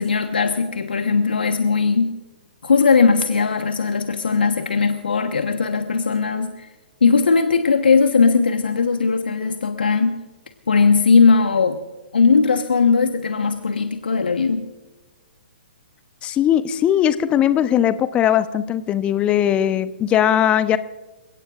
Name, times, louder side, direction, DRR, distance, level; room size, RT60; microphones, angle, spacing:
voice 1, 0.0-2.1 2.6-6.7 7.0-10.2 10.7-11.8 12.1-14.6, left 5 dB, 70° left, 6 dB, 1.3 m, -18 dB
voice 2, 16.2-20.8, left 10 dB, 20° left, 13 dB, 0.9 m, -19 dB
29.0 x 17.5 x 2.5 m, 1.2 s
figure-of-eight pair, 125°, 5 cm